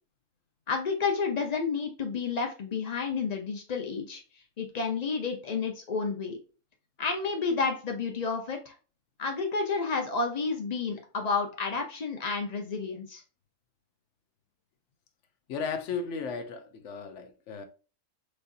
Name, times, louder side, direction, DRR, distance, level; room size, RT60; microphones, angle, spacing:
voice 1, 0.7-4.2 4.6-6.4 7.0-8.7 9.2-13.2, left 4 dB, 90° left, 0.3 m, -30 dB
voice 2, 15.5-17.6, left 5 dB, 65° left, 0.8 m, -35 dB
6.5 x 2.7 x 2.5 m
omnidirectional pair, 1.7 m